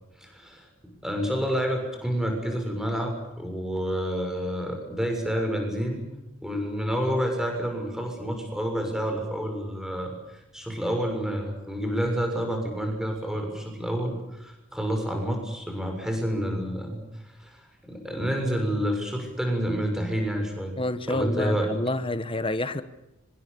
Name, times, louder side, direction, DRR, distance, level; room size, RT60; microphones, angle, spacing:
voice 1, 0.2-6.0 6.4-17.0 17.4-20.7 21.1-21.7, equal, 5° right, 3 dB, 6.8 m, -29 dB
voice 2, 20.8-22.8, left 1 dB, 25° left, 11 dB, 1.3 m, -28 dB
26.0 x 25.5 x 7.0 m, 0.95 s
head